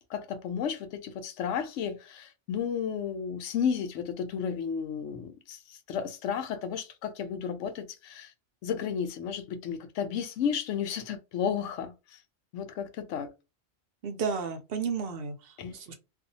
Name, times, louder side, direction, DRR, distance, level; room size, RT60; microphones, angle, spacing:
voice 1, 0.1-8.3 8.6-12.2 12.5-13.3 15.6-15.8, left 7 dB, 85° left, 0.9 m, -33 dB
voice 2, 14.0-15.9, right 5 dB, 60° right, 0.7 m, -33 dB
2.6 x 2.4 x 2.6 m
omnidirectional pair, 1.2 m